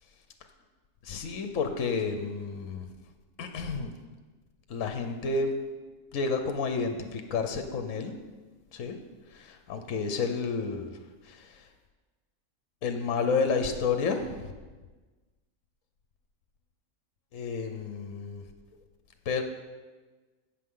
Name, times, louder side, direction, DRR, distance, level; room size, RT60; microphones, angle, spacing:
voice 1, 1.0-2.9 3.4-3.9 4.7-5.6 6.1-8.2 8.7-9.0 9.3-10.9 11.2-11.7 12.8-14.5 17.3-18.4 19.2-19.4, left 4 dB, 65° left, 6 dB, 1.2 m, -30 dB
16.5 x 6.3 x 3.8 m, 1.3 s
omnidirectional pair, 1.5 m